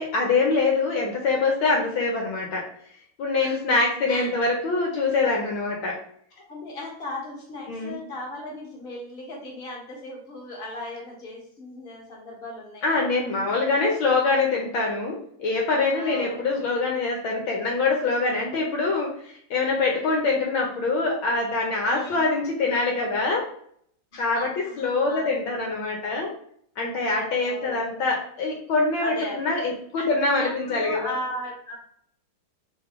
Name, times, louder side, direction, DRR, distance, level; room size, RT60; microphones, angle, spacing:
voice 1, 0.0-2.7 3.2-6.0 7.7-8.0 12.8-23.5 24.2-24.5 24.8-26.3 26.8-31.1, left 3 dB, 70° left, -1 dB, 1.5 m, -24 dB
voice 2, 3.4-3.8 4.1-4.3 6.5-13.0 15.9-16.4 21.9-22.3 24.1-25.4 27.3-27.8 29.0-29.5 30.0-31.7, left 1 dB, 30° left, -2 dB, 1.3 m, -37 dB
3.7 x 3.4 x 3.6 m, 0.65 s
omnidirectional pair, 2.4 m